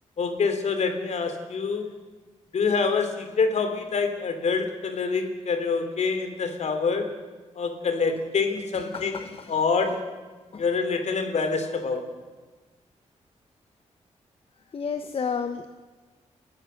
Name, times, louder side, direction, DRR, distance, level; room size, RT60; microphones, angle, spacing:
voice 1, 0.2-1.9 2.5-7.1 7.5-9.2 9.5-10.0 10.6-12.0, left 4 dB, 70° left, 7 dB, 3.3 m, -26 dB
voice 2, 8.7-9.5 10.5-10.6 14.7-15.8, left 6 dB, 50° left, 7 dB, 1.2 m, -32 dB
29.5 x 15.0 x 6.7 m, 1.3 s
cardioid pair, 90°, 12 cm